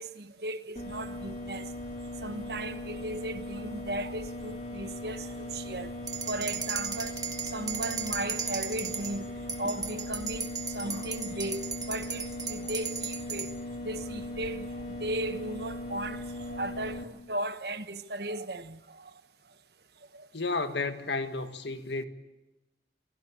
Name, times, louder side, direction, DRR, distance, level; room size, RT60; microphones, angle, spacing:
voice 1, 0.0-1.7 2.2-5.9 6.3-9.3 9.6-19.1 20.1-20.3, right 1 dB, 65° right, 1.3 m, -36 dB
sound 1, 0.8-17.0, left 1 dB, 40° left, 3.3 m, -39 dB
sound 2, 6.1-9.1 9.5-13.5, right 6 dB, 20° right, 1.9 m, -36 dB
voice 2, 20.3-22.1, left 3 dB, 75° left, 1.8 m, -32 dB
28.5 x 17.0 x 8.6 m
head